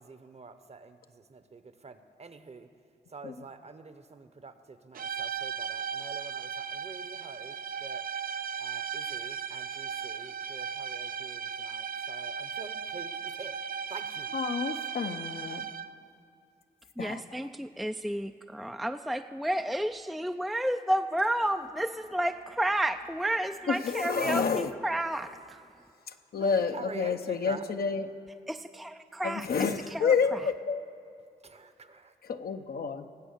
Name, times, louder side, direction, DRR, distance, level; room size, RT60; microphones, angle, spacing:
voice 1, 0.0-2.7 3.1-8.1 8.6-13.6 13.9-14.3 26.3-27.6 31.4-32.1, right 4 dB, 40° right, 10 dB, 0.9 m, -46 dB
sound 1, 4.9-16.1, right 7 dB, 60° right, 0.5 m, -37 dB
voice 2, 14.3-15.7 17.0-17.5 23.7-24.7 26.1-28.1 29.2-30.8 32.2-33.1, left 5 dB, 65° left, 7 dB, 0.7 m, -30 dB
voice 3, 17.0-25.6 28.5-30.4, right 1 dB, ahead, 7 dB, 0.4 m, -31 dB
18.5 x 7.6 x 6.6 m, 2.5 s
cardioid pair, 60°, 17 cm